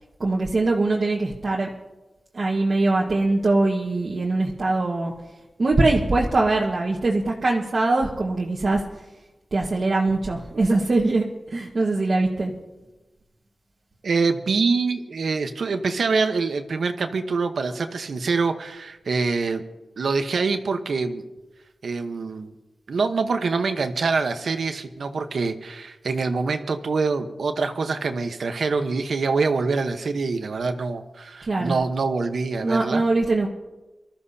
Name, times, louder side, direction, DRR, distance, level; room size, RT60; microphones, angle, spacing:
voice 1, 0.2-1.7 2.3-5.1 5.6-8.8 9.5-12.5 31.4-31.8 32.6-33.5, right 2 dB, 50° right, -3 dB, 1.5 m, -22 dB
voice 2, 14.0-19.6 20.0-21.2 21.8-22.5 22.9-33.0, right 4 dB, 75° right, 7 dB, 1.1 m, -25 dB
25.0 x 13.5 x 2.8 m, 1.1 s
wide cardioid pair, 130°, 0 cm